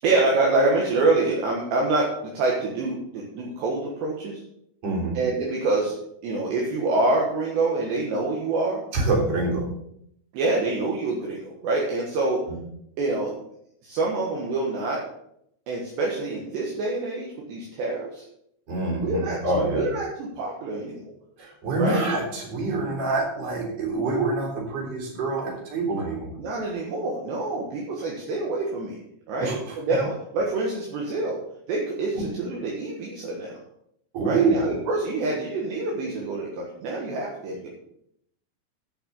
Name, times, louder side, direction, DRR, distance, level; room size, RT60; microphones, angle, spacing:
voice 1, 0.0-4.4 5.2-6.0 6.2-8.8 10.3-12.4 13.0-13.3 13.8-15.0 15.7-18.2 19.0-19.4 19.7-21.1 21.8-22.0 26.4-29.0 29.3-31.4 31.7-33.5 34.3-37.7, right 2 dB, 65° right, -2 dB, 3.4 m, -26 dB
voice 2, 4.8-5.2 8.9-9.6 18.7-19.8 21.4-26.3 29.4-29.8 32.2-32.3 34.1-34.7, right 3 dB, 35° right, -3 dB, 4.1 m, -26 dB
10.0 x 5.9 x 7.0 m, 0.74 s
omnidirectional pair, 5.7 m